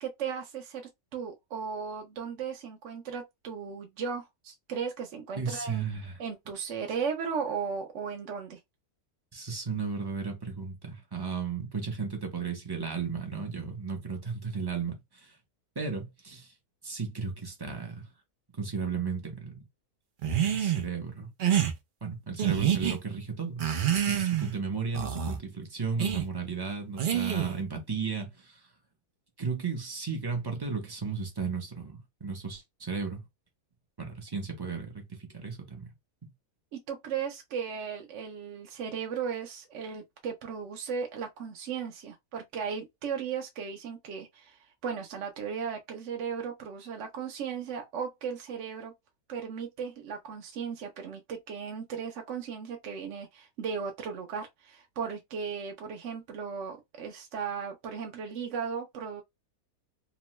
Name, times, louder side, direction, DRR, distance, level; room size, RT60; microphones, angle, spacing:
voice 1, 0.0-5.8 6.2-8.6 36.7-48.9 49.3-59.2, right 6 dB, 65° right, 0.8 m, -36 dB
voice 2, 5.4-6.2 9.3-15.4 15.8-16.5 16.8-18.0 18.6-19.6 20.4-21.3 22.0-28.6 29.4-33.2 34.0-35.9, right 5 dB, 30° right, 0.5 m, -34 dB
sound 1, 20.2-20.9 21.4-21.7 22.4-23.0 23.6-24.6 24.9-25.4 26.0-26.3 27.0-27.6, right 10 dB, 85° right, 0.4 m, -27 dB
3.0 x 2.1 x 2.9 m
omnidirectional pair, 1.6 m